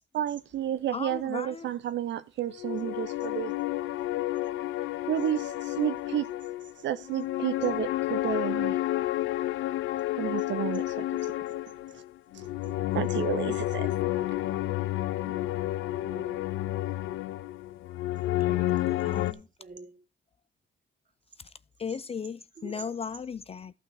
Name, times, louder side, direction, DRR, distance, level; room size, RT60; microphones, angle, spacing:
voice 1, 0.1-3.5 5.1-6.3 6.8-8.8 10.2-11.3 11.9-12.0 12.3-12.5 12.9-13.9, right 11 dB, 65° right, 0.5 m, -31 dB
voice 2, 0.9-1.7 19.0-19.4 21.8-23.7, left 6 dB, 30° left, 0.4 m, -36 dB
sound 1, 2.6-19.3, left 15 dB, 85° left, 0.5 m, -30 dB
voice 3, 12.6-12.9 15.2-15.5 16.0-16.4 18.3-20.0 22.6-22.9, right 4 dB, 40° right, 1.7 m, -48 dB
11.5 x 6.0 x 4.8 m
cardioid pair, 90°, 20 cm